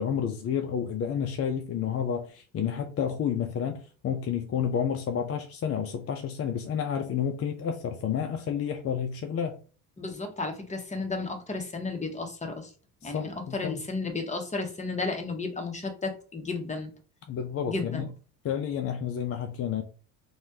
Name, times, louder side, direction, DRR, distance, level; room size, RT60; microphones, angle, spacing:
voice 1, 0.0-9.6 13.0-13.8 17.3-18.1 18.4-19.8, left 8 dB, 35° left, 0.5 m, -30 dB
voice 2, 10.0-12.7 13.0-16.9 17.7-18.1, left 3 dB, 15° left, 0.9 m, -33 dB
3.2 x 2.3 x 2.7 m
hypercardioid pair, 65°, 43 cm